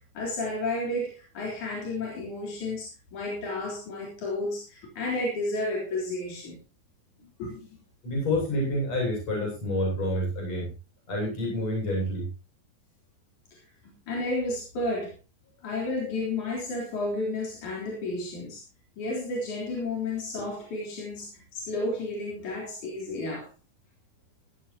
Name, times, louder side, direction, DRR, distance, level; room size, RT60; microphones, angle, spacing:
voice 1, 0.2-6.6 7.4-7.7 13.8-15.1 15.6-18.6 19.0-23.5, left 2 dB, 80° left, -2 dB, 5.2 m, -32 dB
voice 2, 8.0-10.7 11.1-12.3, left 1 dB, 60° left, -1 dB, 9.0 m, -28 dB
15.0 x 14.5 x 2.9 m, 0.29 s
omnidirectional pair, 3.4 m